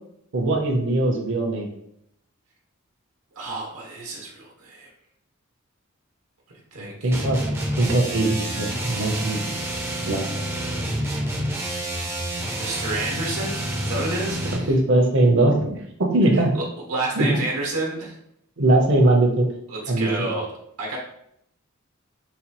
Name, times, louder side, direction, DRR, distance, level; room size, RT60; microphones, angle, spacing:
voice 1, 0.3-1.7 6.8-7.4 7.8-9.4 10.0-10.2 14.7-15.8 16.1-16.5 17.2-17.3 18.6-19.5 19.9-20.3, right 2 dB, 55° right, 1 dB, 0.6 m, -20 dB
voice 2, 3.4-4.9 6.7-7.2 12.5-14.7 16.3-16.6 16.9-18.2 19.7-20.5 20.8-21.0, right 2 dB, 85° right, -3 dB, 1.0 m, -30 dB
sound 1, 7.1-14.7, right 1 dB, 10° right, 0.4 m, -28 dB
4.1 x 2.2 x 2.9 m, 0.75 s
head